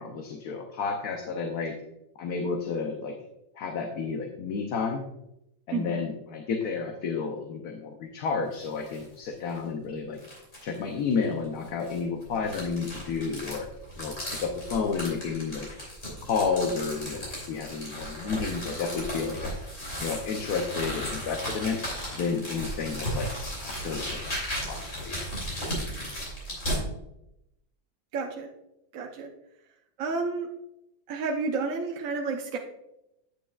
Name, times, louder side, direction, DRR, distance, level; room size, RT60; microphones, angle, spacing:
voice 1, 0.0-1.7 2.2-3.2 3.6-5.0 5.7-10.2 10.6-13.7 14.0-15.7 16.3-19.6 20.0-21.8 22.1-23.3 23.6-24.3 24.7-25.2, left 5 dB, 70° left, 3 dB, 1.3 m, -31 dB
voice 2, 5.7-6.0 28.1-28.5 28.9-29.3 30.0-30.5 31.1-32.6, right 4 dB, 60° right, 1 dB, 1.0 m, -30 dB
sound 1, 8.5-9.1 9.5-9.6 10.2-10.8 11.6-26.8, equal, 45° left, 3.4 m, -35 dB
8.9 x 8.5 x 2.4 m, 0.84 s
omnidirectional pair, 1.7 m